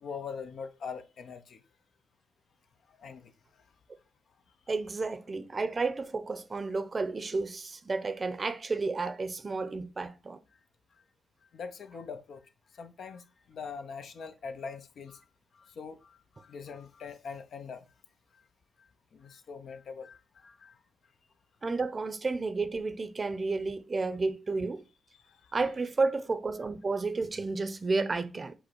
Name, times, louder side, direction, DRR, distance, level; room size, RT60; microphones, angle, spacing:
voice 1, 0.0-1.6 3.0-3.3 11.5-12.4 12.7-15.2 15.5-17.8 18.3-18.4 18.8-20.8 25.2-25.6, left 5 dB, 65° left, 0.5 m, -43 dB
voice 2, 4.7-10.4 21.6-24.8 25.5-28.5, right 3 dB, 40° right, 0.6 m, -31 dB
5.1 x 2.1 x 4.4 m
supercardioid pair, 50°, 0 cm